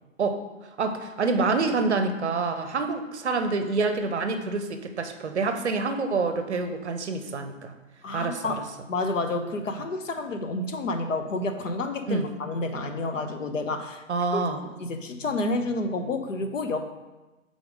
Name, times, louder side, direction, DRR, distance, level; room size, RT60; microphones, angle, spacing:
voice 1, 0.8-7.7 8.1-8.6 12.1-12.3 14.1-14.6, right 3 dB, 55° right, 7 dB, 0.7 m, -27 dB
voice 2, 8.0-8.6 8.9-14.0 14.3-16.8, left 2 dB, 70° left, 6 dB, 0.8 m, -30 dB
4.8 x 3.8 x 5.2 m, 1.1 s
hypercardioid pair, 175°, 40 cm